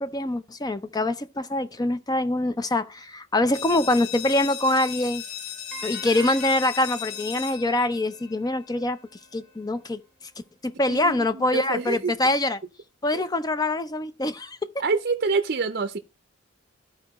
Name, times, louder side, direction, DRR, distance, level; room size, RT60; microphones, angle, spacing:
voice 1, 0.0-5.2 5.8-9.0 9.3-10.0 10.6-12.6 13.0-14.6, left 1 dB, 20° left, 0.5 m, -24 dB
sound 1, 3.5-9.0, left 9 dB, 80° left, 3.0 m, -37 dB
sound 2, 5.7-8.9, right 2 dB, 5° left, 1.2 m, -43 dB
voice 2, 10.9-12.1 13.1-13.2 14.8-16.0, right 4 dB, 50° right, 0.6 m, -26 dB
13.5 x 4.7 x 3.0 m
head